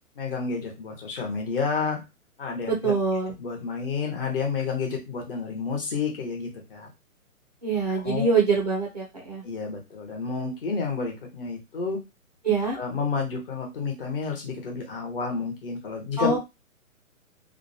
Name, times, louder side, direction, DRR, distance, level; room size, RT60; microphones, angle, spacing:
voice 1, 0.2-2.0 2.4-2.9 3.4-6.9 7.9-8.3 9.4-12.0 12.7-16.4, left 5 dB, 40° left, 1 dB, 1.1 m, -30 dB
voice 2, 2.7-3.3 7.6-9.4 12.4-12.8 16.2-16.4, right 4 dB, 30° right, -2 dB, 0.4 m, -24 dB
2.8 x 2.1 x 2.6 m, 0.23 s
hypercardioid pair, 155°, 42 cm